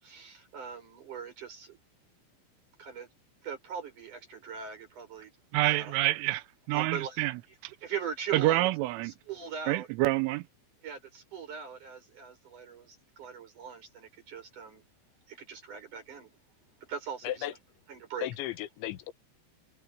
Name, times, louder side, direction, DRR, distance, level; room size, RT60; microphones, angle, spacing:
voice 1, 0.0-1.8 2.8-3.1 3.4-5.3 5.7-5.9 6.7-7.2 7.8-8.7 9.0-9.9 10.8-14.8 15.3-16.4 16.8-17.5 17.9-18.3, right 7 dB, 40° right, 7.2 m, -41 dB
voice 2, 5.5-7.3 7.6-7.7 8.3-9.1 9.7-10.4, right 18 dB, 90° right, 3.4 m, -27 dB
voice 3, 18.2-19.1, left 13 dB, 75° left, 3.4 m, -35 dB
omnidirectional pair, 5.6 m